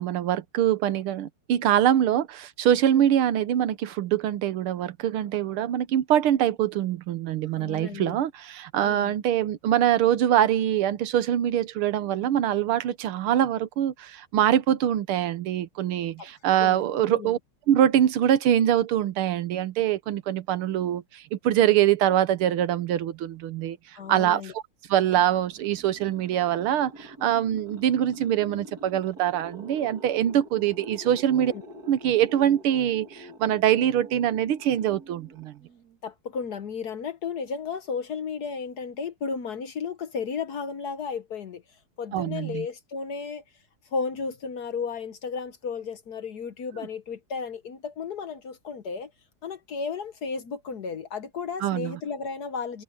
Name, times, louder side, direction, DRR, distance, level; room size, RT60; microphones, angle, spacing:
voice 1, 0.0-17.4 17.7-23.8 24.1-24.5 24.9-31.5 31.9-35.5 42.1-42.7 51.6-52.0, right 11 dB, 75° right, 1.8 m, -24 dB
voice 2, 7.5-8.1 8.8-9.1 16.2-17.4 24.0-24.5 31.4-31.6 36.0-41.6 42.0-43.4 43.9-49.1 49.4-52.8, left 5 dB, 55° left, 1.3 m, -34 dB
sound 1, 24.8-36.0, right 1 dB, 45° right, 2.7 m, -46 dB
omnidirectional pair, 2.4 m